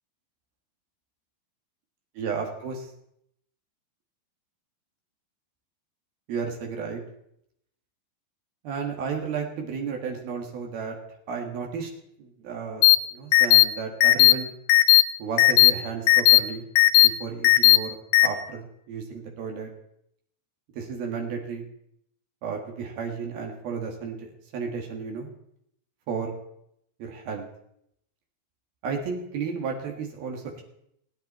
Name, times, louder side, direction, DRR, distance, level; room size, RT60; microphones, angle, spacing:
voice 1, 2.2-2.9 6.3-7.0 8.6-11.0 11.3-11.9 12.2-14.5 15.2-16.7 16.9-18.0 18.2-19.7 20.8-21.7 22.4-25.3 26.1-26.4 27.0-27.5 28.8-30.6, right 5 dB, 80° right, 2 dB, 3.9 m, -33 dB
sound 1, 12.8-13.0 13.3-13.6 14.0-14.3 14.7-15.0 15.4-15.7 16.1-16.4 16.8-17.1 17.4-17.8 18.1-18.3, left 18 dB, 75° left, 2.5 m, -15 dB
28.0 x 10.0 x 4.4 m, 0.75 s
omnidirectional pair, 4.2 m